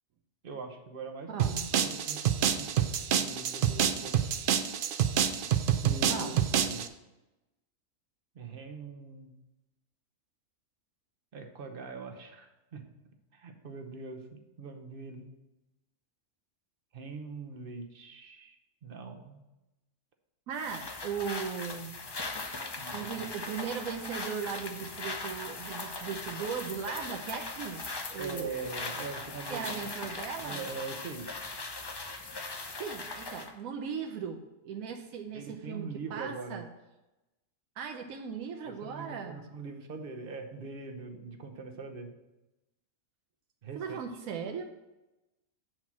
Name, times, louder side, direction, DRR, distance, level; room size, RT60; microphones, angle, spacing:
voice 1, 0.4-2.9 3.2-4.5 5.8-6.9 8.3-9.3 11.3-12.8 13.3-15.2 16.9-19.4 22.8-23.3 28.2-29.8 30.4-31.3 35.3-36.6 38.8-42.1 43.6-44.0, right 4 dB, 45° right, 5 dB, 0.9 m, -42 dB
voice 2, 1.3-1.6 6.1-6.4 20.5-22.0 22.9-27.8 28.1-28.5 29.5-30.6 32.8-36.7 37.8-39.5 43.7-44.6, right 6 dB, 85° right, 3 dB, 1.1 m, -38 dB
sound 1, 1.4-6.9, right 9 dB, 65° right, 0.5 m, -28 dB
sound 2, 20.5-33.5, left 3 dB, 40° left, 0.3 m, -39 dB
7.7 x 4.4 x 6.0 m, 1.0 s
omnidirectional pair, 1.4 m